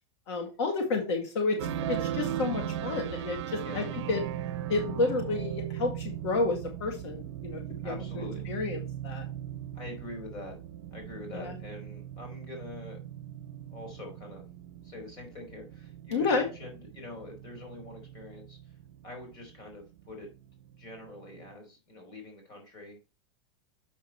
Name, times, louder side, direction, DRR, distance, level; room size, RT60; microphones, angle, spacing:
voice 1, 0.3-1.6 1.9-4.2 4.7-9.3 11.3-11.6 16.1-16.4, left 3 dB, 70° left, 4 dB, 1.9 m, -31 dB
sound 1, 1.6-21.5, right 10 dB, 75° right, 0.8 m, -38 dB
voice 2, 7.8-8.5 9.7-10.6 10.9-13.0 13.7-14.4 14.8-18.6 19.0-20.3 20.8-23.0, left 2 dB, 30° left, 2 dB, 3.6 m, -44 dB
7.2 x 6.0 x 4.4 m, 0.31 s
supercardioid pair, 180°, 15 cm